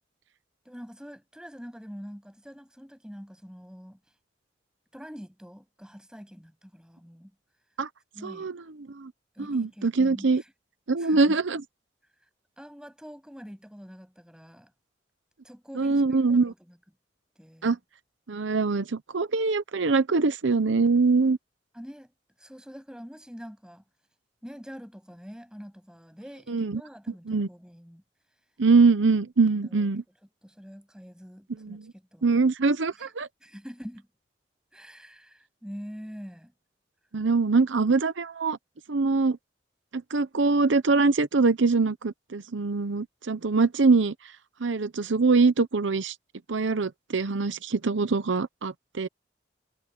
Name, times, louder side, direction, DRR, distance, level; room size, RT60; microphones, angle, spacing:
voice 1, 0.6-4.0 4.9-7.3 8.1-8.5 9.3-10.5 11.0-11.4 12.6-14.7 15.4-16.2 16.4-16.8 17.4-17.8 21.7-22.1 22.4-23.8 24.4-28.0 29.6-29.9 30.4-32.5 33.0-33.1 33.4-34.1 34.7-36.5, equal, 5° right, 7.5 m, -45 dB
voice 2, 8.2-8.6 8.9-9.1 9.4-10.4 10.9-11.6 15.8-16.5 17.6-17.8 18.3-21.4 26.5-26.8 27.3-27.5 28.6-30.0 31.6-31.9 32.2-33.3 37.1-38.6 38.9-39.4 39.9-44.1 44.6-46.1 46.5-49.1, right 4 dB, 90° right, 0.8 m, -23 dB
head